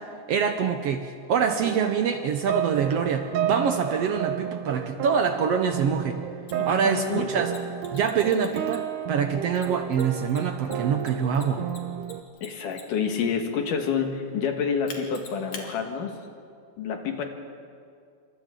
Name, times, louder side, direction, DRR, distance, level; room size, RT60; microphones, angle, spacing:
voice 1, 0.0-6.2 6.6-7.5 7.9-11.7, right 6 dB, 65° right, 6 dB, 1.6 m, -25 dB
sound 1, 1.4-12.2, right 9 dB, 90° right, 2.5 m, -32 dB
Mechanisms, 6.5-6.6 7.5-9.0 9.6-13.1 14.9-15.7, left 6 dB, 70° left, 3.3 m, -43 dB
voice 2, 6.6-7.3 12.4-16.2 16.8-17.2, left 6 dB, 85° left, 4 dB, 3.2 m, -28 dB
28.0 x 25.0 x 3.8 m, 2.3 s
omnidirectional pair, 3.6 m